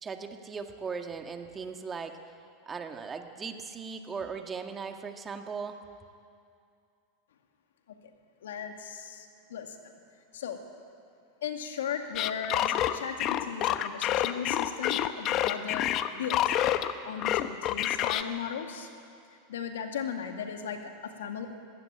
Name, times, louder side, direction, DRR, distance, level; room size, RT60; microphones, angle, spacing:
voice 1, 0.0-2.2 2.7-5.8, right 5 dB, 25° right, 5 dB, 1.8 m, -38 dB
voice 2, 8.4-9.7 10.3-10.6 11.4-15.9 16.1-16.5 17.0-18.9 19.5-21.5, left 7 dB, 80° left, 5 dB, 2.2 m, -37 dB
sound 1, 12.1-16.9 17.2-18.2, left 12 dB, 45° left, 1.0 m, -27 dB
20.0 x 17.0 x 8.9 m, 2.4 s
hypercardioid pair, 100°, 0 cm